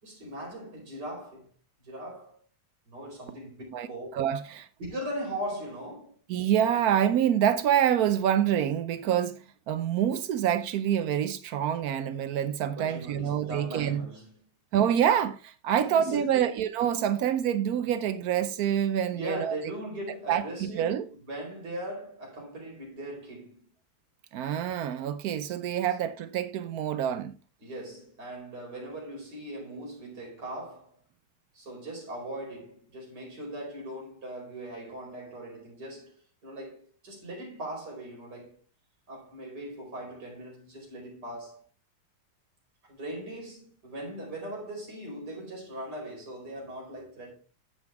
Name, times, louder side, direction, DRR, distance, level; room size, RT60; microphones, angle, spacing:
voice 1, 0.0-1.5 1.8-2.4 2.9-4.1 4.8-6.1 12.7-14.3 15.9-16.4 19.1-23.7 27.6-31.0 31.5-38.6 39.1-41.7 42.8-47.3, right 1 dB, 50° right, 5.2 m, -39 dB
voice 2, 4.1-4.7 6.3-14.0 14.7-19.6 20.3-21.1 24.3-27.4, right 9 dB, 85° right, 0.8 m, -26 dB
10.5 x 7.9 x 3.5 m
omnidirectional pair, 2.4 m